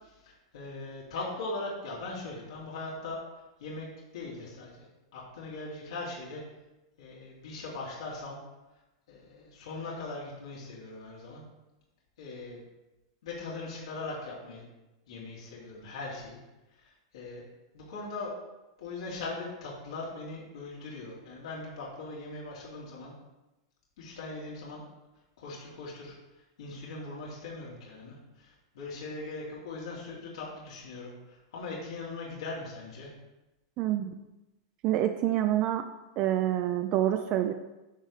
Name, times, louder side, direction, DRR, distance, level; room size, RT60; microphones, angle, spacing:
voice 1, 0.0-3.2 3.6-3.9 4.1-4.9 5.1-6.4 7.0-8.4 9.1-11.4 12.2-12.6 13.2-14.6 15.1-16.4 16.8-17.4 17.7-18.3 18.8-23.1 24.0-24.8 25.4-26.2 26.6-33.1, left 3 dB, 85° left, -5 dB, 2.6 m, -40 dB
voice 2, 33.8-34.1 34.8-35.8 36.2-37.5, right 12 dB, 40° right, 7 dB, 0.4 m, -27 dB
10.0 x 5.5 x 3.2 m, 1.0 s
supercardioid pair, 145°, 3 cm